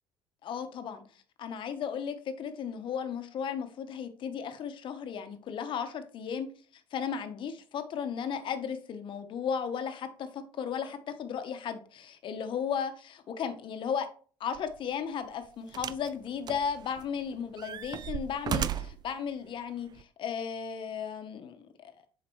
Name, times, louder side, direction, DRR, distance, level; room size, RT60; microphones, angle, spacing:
voice 1, 0.4-1.0 1.4-6.5 6.9-14.1 14.4-21.9, left 7 dB, 55° left, 1.1 m, -35 dB
sound 1, 14.6-14.7 15.7-16.1 16.5-17.2 17.6-19.1 20.0-20.1, right 10 dB, 45° right, 0.4 m, -35 dB
7.5 x 5.0 x 3.1 m
supercardioid pair, 80°, 10 cm